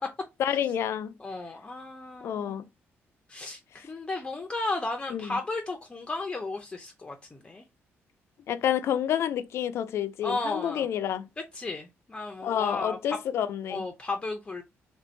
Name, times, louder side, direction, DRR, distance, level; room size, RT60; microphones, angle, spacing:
voice 1, 0.4-1.1 2.2-2.6 5.1-5.4 8.5-11.3 12.4-13.8, left 10 dB, 70° left, 0.5 m, -29 dB
voice 2, 1.2-2.6 3.3-7.6 10.2-10.9 11.5-13.2 13.7-14.6, left 2 dB, 20° left, 0.6 m, -34 dB
3.3 x 2.6 x 4.4 m
cardioid pair, 130°, 5 cm